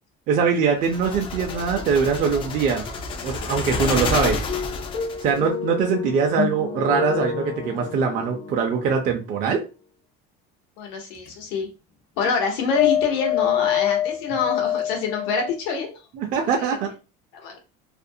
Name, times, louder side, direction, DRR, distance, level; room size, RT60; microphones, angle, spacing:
voice 1, 0.3-2.9 3.2-4.4 5.2-9.6 16.1-16.9, right 6 dB, 45° right, 2 dB, 0.5 m, -22 dB
sound 1, 0.8-5.4, left 4 dB, 25° left, 0.3 m, -29 dB
sound 2, 4.5-9.6 11.2-11.3 12.7-15.6, left 9 dB, 45° left, 0.7 m, -27 dB
voice 2, 10.8-11.7 12.2-16.0 16.5-16.7 17.3-17.6, left 5 dB, 75° left, 3 dB, 0.9 m, -26 dB
2.4 x 2.0 x 2.6 m, 0.30 s
cardioid pair, 150°, 20 cm